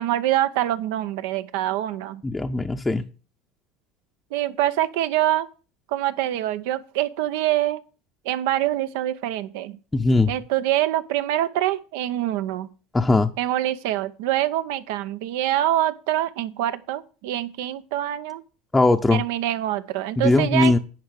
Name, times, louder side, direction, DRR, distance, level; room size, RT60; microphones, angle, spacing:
voice 1, 0.0-2.2 4.3-5.5 5.9-7.8 8.2-9.8 10.3-12.7 13.4-18.4 19.1-20.7, right 13 dB, 75° right, 0.8 m, -25 dB
voice 2, 2.2-3.0 9.9-10.3 12.9-13.3 18.7-19.2 20.2-20.8, left 2 dB, 15° left, 0.7 m, -19 dB
10.5 x 4.7 x 8.1 m
supercardioid pair, 100°, 0 cm